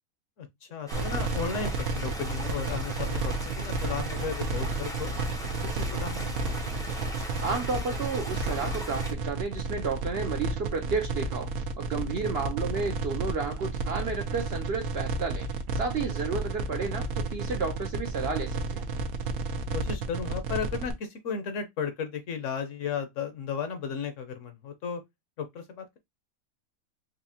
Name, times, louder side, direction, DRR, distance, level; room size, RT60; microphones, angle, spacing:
voice 1, 0.4-5.1 5.6-6.4 12.0-12.4 19.7-25.0 25.4-26.0, left 6 dB, 65° left, 1.0 m, -35 dB
Stream, 0.9-9.1, equal, 5° left, 0.4 m, -40 dB
sound 1, 0.9-20.9, right 3 dB, 80° right, 1.1 m, -32 dB
voice 2, 7.4-15.5 15.7-18.9, right 4 dB, 60° right, 0.7 m, -32 dB
4.2 x 2.7 x 2.7 m
omnidirectional pair, 1.5 m